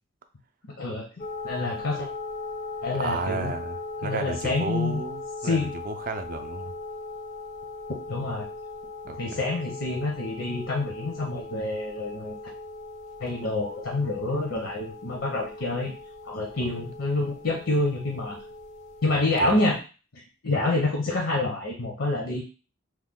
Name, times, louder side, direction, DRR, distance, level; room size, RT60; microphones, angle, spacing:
voice 1, 0.8-1.1 1.4-2.1 2.8-3.5 4.0-5.0 5.4-5.7 8.1-8.5 9.2-12.4 13.2-15.9 16.2-18.4 19.0-19.8 20.1-22.4, left 2 dB, 75° left, -1 dB, 0.7 m, -27 dB
sound 1, 1.2-19.8, left 3 dB, 35° left, 0.4 m, -39 dB
voice 2, 2.9-6.7 9.1-9.4 19.4-19.5, right 4 dB, 40° right, 8 dB, 0.3 m, -33 dB
3.1 x 2.1 x 3.5 m, 0.33 s
head